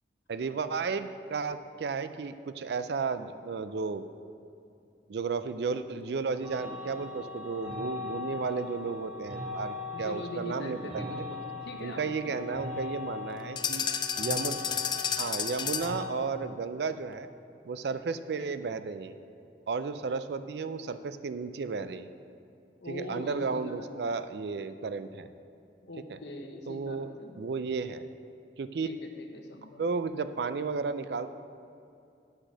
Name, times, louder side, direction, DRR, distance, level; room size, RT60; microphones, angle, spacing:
voice 1, 0.3-4.1 5.1-11.2 11.8-13.8 14.2-14.6 15.1-17.3 17.6-19.1 19.7-22.1 22.9-25.3 26.7-28.1 28.6-28.9 29.7-31.3, right 4 dB, 70° right, 11 dB, 0.4 m, -33 dB
sound 1, 6.4-16.1, left 3 dB, 25° right, 2.1 m, -40 dB
voice 2, 9.9-12.0 12.4-12.6 22.8-23.9 25.8-27.4 28.8-29.8, left 1 dB, 80° left, 3 dB, 1.1 m, -42 dB
sound 2, 13.6-16.0, left 7 dB, 25° left, 0.3 m, -31 dB
10.0 x 6.3 x 6.2 m, 2.6 s
head